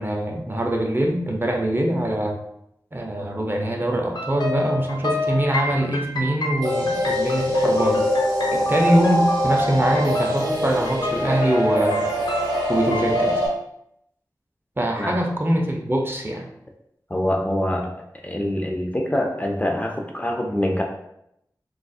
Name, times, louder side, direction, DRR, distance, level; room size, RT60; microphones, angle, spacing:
voice 1, 0.0-2.4 2.9-8.0 8.5-12.1 12.7-13.4 14.8-16.5, right 1 dB, 30° right, 1 dB, 0.5 m, -23 dB
sound 1, 4.2-13.5, left 2 dB, 85° left, 0.4 m, -30 dB
sound 2, 6.6-13.5, equal, 70° right, 0.7 m, -23 dB
voice 2, 17.1-17.9 18.2-20.8, left 1 dB, 20° left, 1 dB, 0.4 m, -24 dB
3.9 x 2.4 x 2.3 m, 0.78 s
wide cardioid pair, 55°, 7 cm